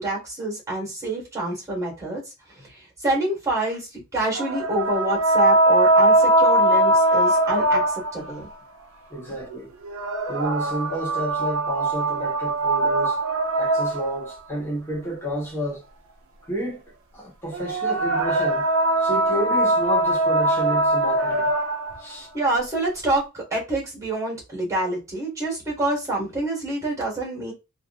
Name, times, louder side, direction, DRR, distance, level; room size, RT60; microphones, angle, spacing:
voice 1, 0.0-2.2 2.6-8.5 9.3-9.4 22.3-27.5, right 2 dB, 15° right, 1.7 m, -27 dB
sound 1, 4.3-8.3 9.8-14.3 17.5-22.0, right 1 dB, 60° right, 0.6 m, -21 dB
voice 2, 9.1-9.7 10.3-13.2 13.6-15.8 16.5-16.8 17.1-18.7 19.0-21.5 22.0-22.3, right 1 dB, 10° left, 1.1 m, -30 dB
3.3 x 2.6 x 2.5 m
head